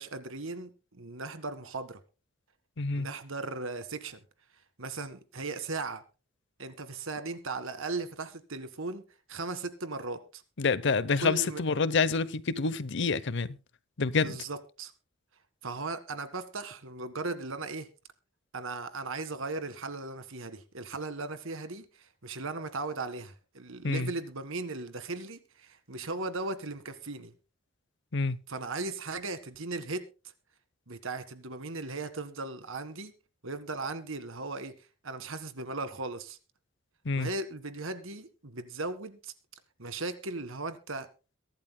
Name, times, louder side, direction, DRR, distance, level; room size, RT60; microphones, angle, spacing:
voice 1, 0.0-2.0 2.9-4.2 4.8-6.0 6.6-9.0 9.3-10.4 11.2-11.6 14.2-14.9 15.6-17.9 18.5-27.3 28.5-30.1 30.9-33.1 33.4-34.8 35.0-36.4 37.2-39.3 39.8-41.1, right 3 dB, 85° right, 1.8 m, -37 dB
voice 2, 2.8-3.1 10.6-13.6 14.0-14.4 23.8-24.1 28.1-28.4 37.0-37.3, left 4 dB, 65° left, 0.8 m, -27 dB
23.0 x 12.0 x 2.2 m
head